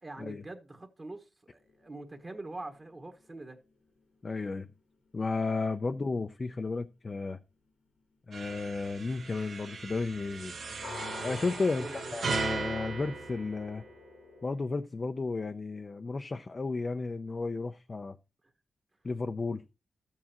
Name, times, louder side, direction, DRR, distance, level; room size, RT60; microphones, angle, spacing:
voice 1, 0.0-3.6 11.7-12.1, right 2 dB, 30° right, 1.4 m, -44 dB
sound 1, 1.6-5.6 6.9-7.0 10.8-14.5, left 5 dB, 90° left, 1.9 m, -48 dB
voice 2, 4.2-4.7 5.1-7.4 8.3-10.6 11.2-13.8 14.4-18.2 19.0-19.6, left 3 dB, 35° left, 0.5 m, -33 dB
sound 2, 8.3-14.1, right 4 dB, 75° right, 1.4 m, -38 dB
13.5 x 7.3 x 2.9 m
wide cardioid pair, 115°, 0 cm